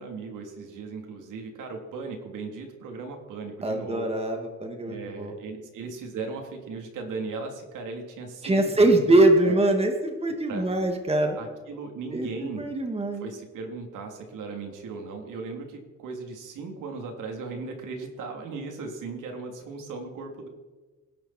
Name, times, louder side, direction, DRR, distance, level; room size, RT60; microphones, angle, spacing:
voice 1, 0.0-4.1 4.9-9.6 10.5-10.7 11.4-12.6 13.2-20.5, right 4 dB, 80° right, 2 dB, 3.5 m, -37 dB
voice 2, 3.6-5.3 8.4-11.4 12.1-13.3, right 2 dB, 20° right, 4 dB, 2.3 m, -23 dB
27.0 x 11.0 x 4.5 m, 1.3 s
cardioid pair, 110°, 31 cm